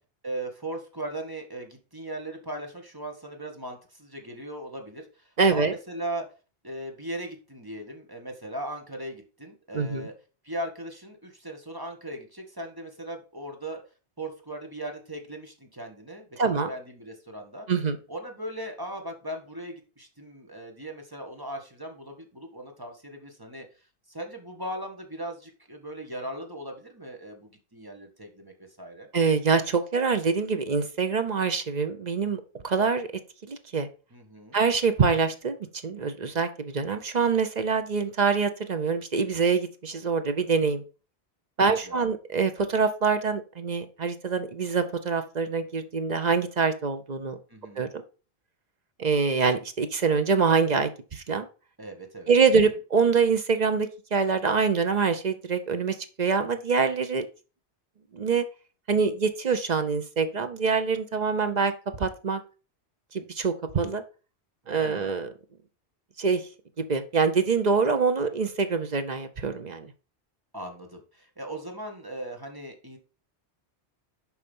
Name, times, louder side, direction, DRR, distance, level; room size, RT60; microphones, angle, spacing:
voice 1, 0.2-6.3 6.6-10.1 10.4-13.8 14.2-16.3 16.7-17.7 18.1-23.7 24.1-29.1 34.1-34.6 41.8-42.1 47.5-47.9 51.8-52.4 64.7-65.1 70.5-73.0, right 1 dB, 20° right, 3 dB, 1.4 m, -38 dB
voice 2, 5.4-5.7 9.7-10.1 16.4-16.7 17.7-18.0 29.1-33.1 33.5-33.9 34.5-35.6 35.8-40.8 41.6-47.4 47.8-48.0 49.0-51.5 52.3-57.3 58.1-58.4 58.9-61.7 62.0-62.4 63.1-64.0 64.7-65.3 66.2-66.4 66.8-69.9, right 5 dB, 45° right, 9 dB, 0.8 m, -25 dB
7.2 x 4.9 x 5.4 m, 0.35 s
omnidirectional pair, 1.1 m